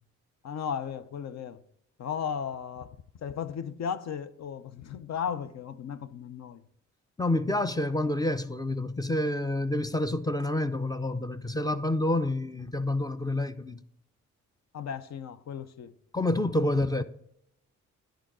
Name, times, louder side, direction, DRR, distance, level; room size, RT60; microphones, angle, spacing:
voice 1, 0.4-1.6 2.0-3.0 3.2-6.6 14.7-15.9, left 7 dB, 60° left, 0.6 m, -35 dB
voice 2, 7.2-13.8 16.1-17.0, left 1 dB, 10° left, 0.4 m, -28 dB
10.5 x 3.8 x 6.0 m
cardioid pair, 70°, 31 cm